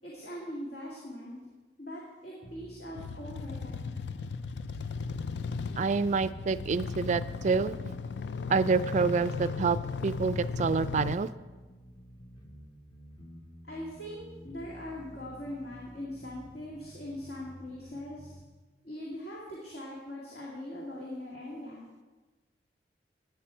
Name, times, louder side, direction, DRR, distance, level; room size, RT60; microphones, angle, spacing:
voice 1, 0.0-1.4 1.8-3.9 13.6-18.4 18.8-21.9, left 1 dB, 65° left, -4 dB, 2.2 m, -41 dB
sound 1, 2.4-18.4, equal, 25° left, 0.9 m, -51 dB
sound 2, 3.0-11.2, left 5 dB, 80° left, 0.5 m, -36 dB
voice 2, 5.8-7.9 8.5-9.8 10.0-11.3, right 4 dB, 45° right, 14 dB, 0.3 m, -27 dB
14.5 x 9.1 x 4.5 m, 1.3 s
head